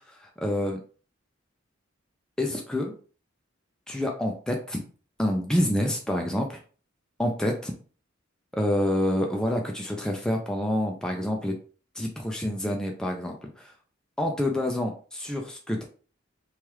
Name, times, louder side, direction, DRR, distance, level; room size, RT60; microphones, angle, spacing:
voice 1, 0.2-0.8 2.4-2.9 3.9-4.8 5.2-6.6 7.2-7.7 8.5-11.5 12.0-13.7 14.2-15.8, left 1 dB, 5° left, 1 dB, 0.3 m, -27 dB
3.0 x 2.3 x 3.0 m, 0.40 s
head